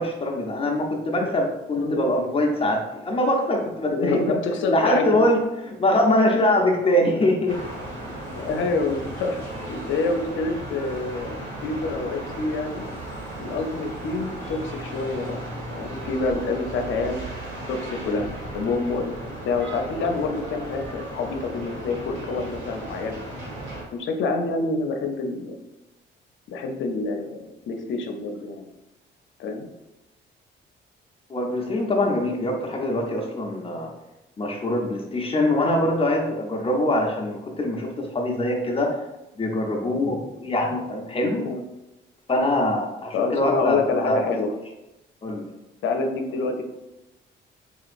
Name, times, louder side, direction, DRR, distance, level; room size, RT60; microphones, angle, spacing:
voice 1, 0.0-4.4 4.7-5.4 5.7-7.6 31.3-33.9 34.4-38.9 39.4-41.5 42.3-44.2 45.2-45.5, left 1 dB, 30° left, 0 dB, 0.7 m, -23 dB
voice 2, 3.9-5.2 8.3-9.4 9.7-12.9 13.4-15.4 15.7-17.2 17.7-18.3 18.5-19.1 19.4-23.2 23.9-25.6 26.5-28.7 29.4-29.7 41.4-41.6 43.1-44.5 45.8-46.6, left 3 dB, 75° left, 4 dB, 0.6 m, -27 dB
sound 1, 7.5-23.8, right 1 dB, 70° right, 1.4 m, -36 dB
4.4 x 2.8 x 2.5 m, 0.96 s
cardioid pair, 90°, 20 cm